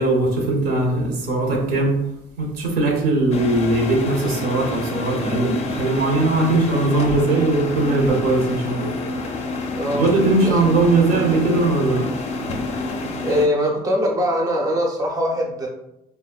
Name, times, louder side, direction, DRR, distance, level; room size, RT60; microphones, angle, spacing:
voice 1, 0.0-2.0 2.4-8.9 9.9-12.1, right 2 dB, 70° right, 1 dB, 0.8 m, -20 dB
sound 1, 3.3-13.5, left 2 dB, 40° left, 0.4 m, -28 dB
voice 2, 9.7-10.1 10.4-10.8 13.2-15.7, equal, 20° right, 0 dB, 0.5 m, -22 dB
3.5 x 2.1 x 2.3 m, 0.84 s
cardioid pair, 110°, 17 cm